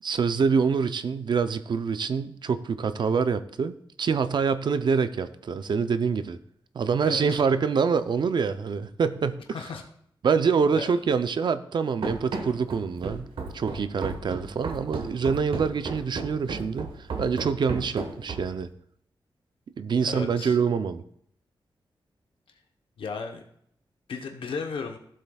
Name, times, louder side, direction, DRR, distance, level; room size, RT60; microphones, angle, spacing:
voice 1, 0.0-6.4 6.7-9.4 10.2-13.3 13.5-16.9 17.2-18.7 19.8-21.0, right 5 dB, 60° right, 11 dB, 0.5 m, -25 dB
Run, 12.0-18.6, right 4 dB, 85° right, 1.3 m, -34 dB
voice 2, 20.0-20.6 23.0-23.4 24.1-25.0, left 5 dB, 90° left, 3 dB, 0.9 m, -34 dB
15.5 x 7.6 x 2.3 m, 0.68 s
wide cardioid pair, 170°, 9 cm